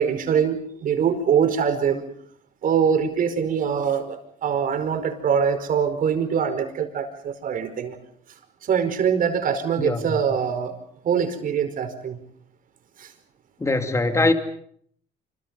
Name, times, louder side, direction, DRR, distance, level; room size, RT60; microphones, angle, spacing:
voice 1, 0.0-2.0 2.6-8.0 8.6-10.7 11.0-12.2 13.0-13.1, right 7 dB, 55° right, 5.1 m, -23 dB
voice 2, 9.8-10.1 13.6-14.3, left 2 dB, 15° left, 2.5 m, -22 dB
27.5 x 26.5 x 5.5 m
cardioid pair, 110°, 17 cm